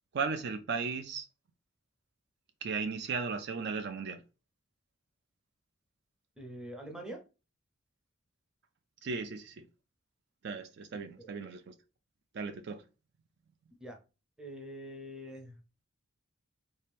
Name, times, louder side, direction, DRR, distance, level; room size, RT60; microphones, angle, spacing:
voice 1, 0.1-1.3 2.6-4.2 9.0-9.6 10.4-11.7 12.3-12.8, right 5 dB, 55° right, 0.4 m, -36 dB
voice 2, 6.4-7.2 11.2-11.3 13.8-14.0 14.4-15.6, equal, 5° right, 0.6 m, -44 dB
3.2 x 2.8 x 3.4 m
head